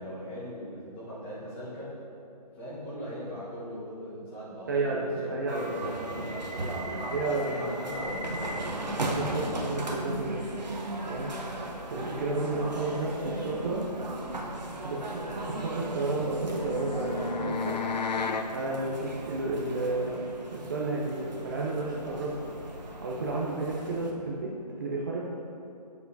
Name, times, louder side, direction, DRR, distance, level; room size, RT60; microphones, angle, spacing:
voice 1, 0.0-1.9 2.5-8.7, equal, 10° left, -8 dB, 1.1 m, -39 dB
voice 2, 4.7-5.6 7.1-7.6 9.0-10.4 11.0-11.3 11.9-13.8 14.8-17.8 18.5-20.2 20.5-22.4 23.0-25.2, right 2 dB, 30° right, -4 dB, 0.5 m, -32 dB
sound 1, 5.5-24.1, right 1 dB, 85° right, 1.1 m, -37 dB
sound 2, 7.8-17.3, left 1 dB, 30° left, 0.7 m, -48 dB
sound 3, 15.9-18.5, left 4 dB, 85° left, 0.5 m, -33 dB
8.0 x 6.9 x 2.6 m, 2.8 s
figure-of-eight pair, 155°, 21 cm